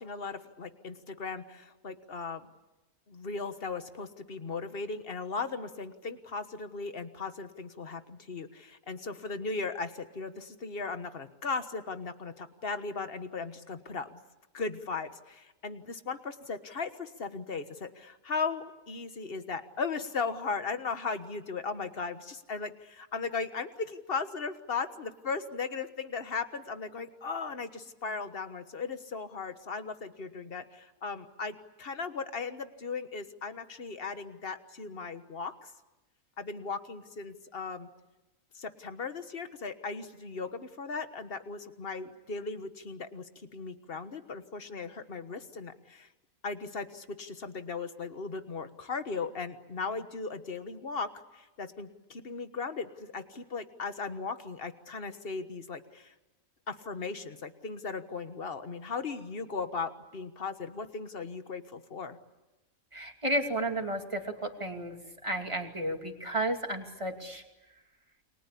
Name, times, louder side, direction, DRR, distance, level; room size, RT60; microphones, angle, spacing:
voice 1, 0.0-2.5 3.1-14.2 14.5-35.7 36.4-37.9 38.5-46.1 46.4-56.1 56.7-62.2, left 4 dB, 40° left, 10 dB, 1.6 m, -37 dB
voice 2, 62.9-67.4, right 1 dB, 20° right, 4 dB, 2.7 m, -33 dB
29.5 x 23.0 x 8.5 m, 1.0 s
omnidirectional pair, 1.5 m